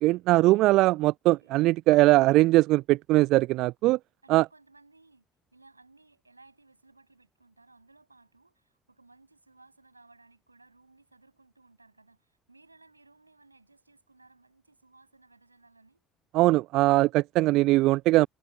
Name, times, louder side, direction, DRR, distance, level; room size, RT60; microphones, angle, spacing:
voice 1, 0.0-4.0 4.3-4.4 16.3-18.3, right 18 dB, 55° right, 0.4 m, -21 dB
voice 2, 4.2-5.2 5.5-16.0, right 3 dB, 85° right, 8.0 m, -59 dB
figure-of-eight pair, 55°, 0 cm